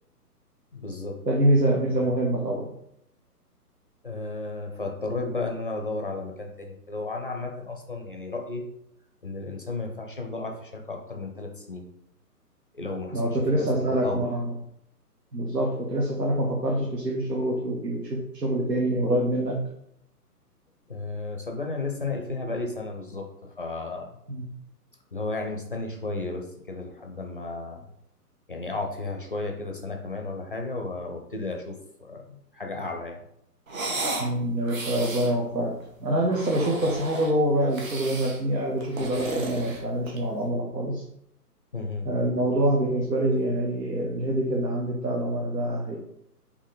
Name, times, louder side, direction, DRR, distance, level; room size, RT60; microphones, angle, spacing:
voice 1, 0.7-1.2 1.9-2.0 4.0-8.6 9.2-11.9 12.7-14.3 20.9-24.2 25.1-27.9 28.5-33.2 37.1-37.2 41.7-42.1, left 3 dB, 35° left, 2 dB, 0.4 m, -33 dB
voice 2, 1.3-2.7 13.1-14.5 15.3-19.6 24.3-24.4 34.2-41.0 42.0-46.0, right 1 dB, 90° right, -1 dB, 0.9 m, -25 dB
sound 1, 33.7-34.3 34.6-35.3 36.2-37.3 37.7-38.4 38.8-40.3, right 2 dB, 55° right, 1.1 m, -34 dB
4.3 x 2.9 x 3.9 m, 0.76 s
figure-of-eight pair, 130°, 48 cm